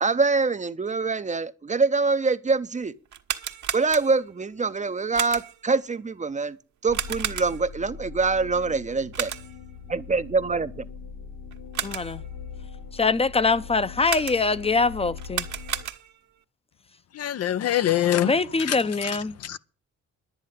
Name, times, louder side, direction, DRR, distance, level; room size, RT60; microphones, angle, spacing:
voice 1, 0.0-2.9 3.7-6.6 6.8-9.3 9.9-10.9, right 4 dB, 25° right, 0.7 m, -25 dB
sound 1, 3.1-4.4 5.1-5.7 6.9-7.8 9.1-9.7 11.5-12.3 14.0-14.7 15.2-16.3, right 9 dB, 70° right, 1.4 m, -33 dB
sound 2, 6.9-15.8, left 6 dB, 90° left, 5.3 m, -41 dB
voice 2, 11.8-12.2 12.9-15.5 18.2-19.3, left 4 dB, 20° left, 0.7 m, -23 dB
voice 3, 17.2-18.3 18.7-18.8 19.0-19.1 19.4-19.6, left 12 dB, 55° left, 0.6 m, -23 dB
10.5 x 9.4 x 7.4 m
cardioid pair, 90°, 30 cm